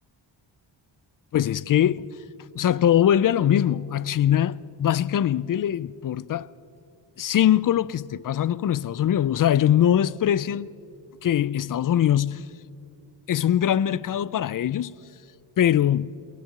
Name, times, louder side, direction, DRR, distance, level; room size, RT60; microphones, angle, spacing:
voice 1, 1.3-2.1 2.6-6.5 7.2-10.7 11.2-12.4 13.3-15.0 15.6-16.2, left 10 dB, 50° left, 0.4 m, -22 dB
23.0 x 19.5 x 6.7 m
wide cardioid pair, 135°, 44 cm